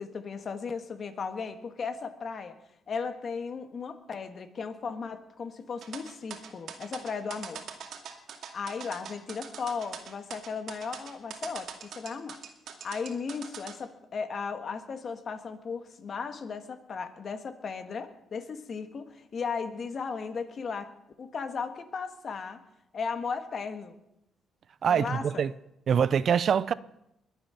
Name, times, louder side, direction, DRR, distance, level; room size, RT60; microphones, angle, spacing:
voice 1, 0.0-2.6 2.9-7.6 8.5-12.4 12.7-20.9 21.2-22.6 22.9-24.0 24.9-25.4, left 5 dB, 50° left, 1.6 m, -36 dB
sound 1, 5.8-13.7, right 7 dB, 70° right, 2.2 m, -42 dB
voice 2, 24.8-25.5 25.9-26.7, right 7 dB, 55° right, 0.5 m, -24 dB
22.0 x 8.6 x 5.7 m
cardioid pair, 90°, 0 cm